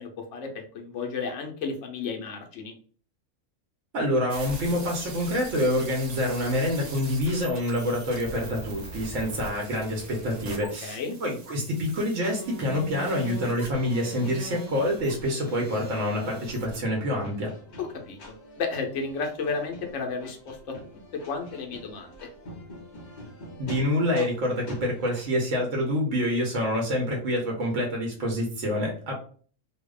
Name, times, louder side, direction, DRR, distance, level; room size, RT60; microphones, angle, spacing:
voice 1, 0.0-2.7 10.8-11.2 17.8-20.8 21.1-22.3, left 4 dB, 75° left, 3 dB, 1.0 m, -33 dB
voice 2, 3.9-17.5 23.6-29.2, left 1 dB, 80° right, -1 dB, 1.1 m, -27 dB
sound 1, 4.3-16.8, right 2 dB, 60° right, 0.4 m, -42 dB
sound 2, 12.1-25.3, left 1 dB, 45° left, 0.7 m, -46 dB
2.7 x 2.0 x 2.3 m, 0.44 s
omnidirectional pair, 1.3 m